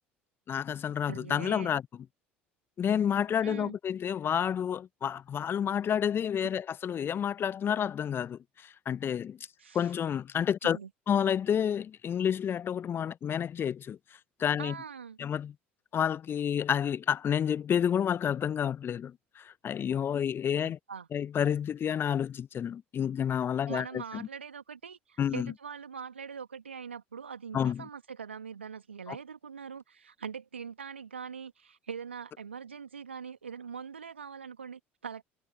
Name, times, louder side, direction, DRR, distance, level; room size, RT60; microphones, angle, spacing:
voice 1, 0.5-1.8 2.8-9.4 9.7-10.8 11.1-14.0 14.4-14.7 15.2-15.5 15.9-20.8 21.1-24.3 25.2-25.5 27.5-27.9 29.1-29.2, left 8 dB, 35° left, 1.0 m, -30 dB
voice 2, 1.0-1.7 3.4-3.7 9.6-9.9 10.6-10.9 14.6-15.2 20.6-21.1 23.7-35.2, right 6 dB, 85° right, 2.4 m, -42 dB
figure-of-eight pair, 60°, 6 cm